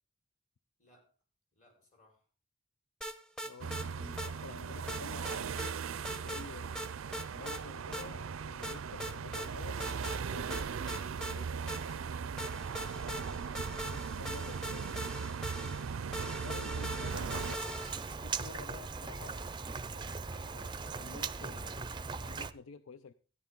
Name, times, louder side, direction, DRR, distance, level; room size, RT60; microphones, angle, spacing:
voice 1, 0.8-1.1 1.5-2.3 3.6-5.2 6.0-6.3 12.7-13.1 16.3-17.0 18.1-18.4, left 2 dB, 40° left, 4.8 m, -63 dB
sound 1, 3.0-3.9 4.2-4.3 4.9-5.7 6.0-6.5 6.8-7.6 7.9-8.1 8.6-9.5 9.8-10.2 10.5-12.1 12.4-18.1, equal, 5° left, 0.9 m, -41 dB
voice 2, 3.4-5.5 6.2-10.8 11.3-11.8 13.7-15.1 16.3-17.7 18.1-19.4 19.9-23.1, left 4 dB, 80° left, 0.5 m, -51 dB
sound 2, 3.6-17.6, right 6 dB, 75° right, 0.5 m, -38 dB
Rain, 17.1-22.5, right 4 dB, 20° right, 0.5 m, -39 dB
13.5 x 11.0 x 3.8 m
head